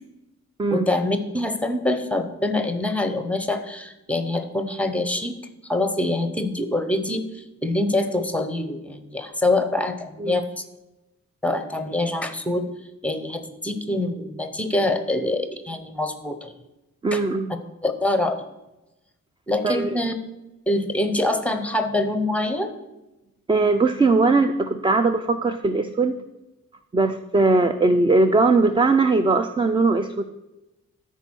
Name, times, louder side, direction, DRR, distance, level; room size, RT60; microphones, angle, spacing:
voice 1, 0.7-5.4 5.7-10.6 11.4-12.7 13.0-16.5 17.1-17.2 17.8-18.5 19.5-20.1 20.7-22.7, left 2 dB, 5° left, 8 dB, 0.8 m, -25 dB
voice 2, 17.0-17.5 19.6-20.0 23.5-26.2 26.9-30.2, right 3 dB, 15° right, 9 dB, 0.3 m, -20 dB
13.0 x 4.6 x 6.2 m, 0.99 s
wide cardioid pair, 150°, 31 cm